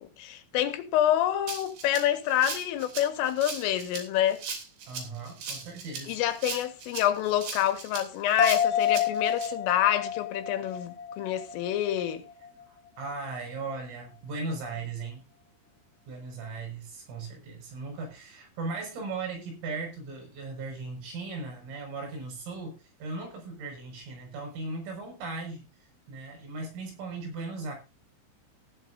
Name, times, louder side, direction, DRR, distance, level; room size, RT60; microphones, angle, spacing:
voice 1, 0.0-4.4 6.1-12.3, left 11 dB, 80° left, 4.1 m, -27 dB
Rattle (instrument), 1.5-9.5, right 5 dB, 55° right, 5.0 m, -38 dB
voice 2, 4.9-6.2 13.0-15.2 16.1-25.7 26.1-27.8, right 3 dB, 85° right, 8.4 m, -37 dB
sound 1, 8.4-12.1 12.4-12.5, left 8 dB, 60° left, 1.8 m, -29 dB
15.5 x 12.0 x 2.7 m
omnidirectional pair, 5.8 m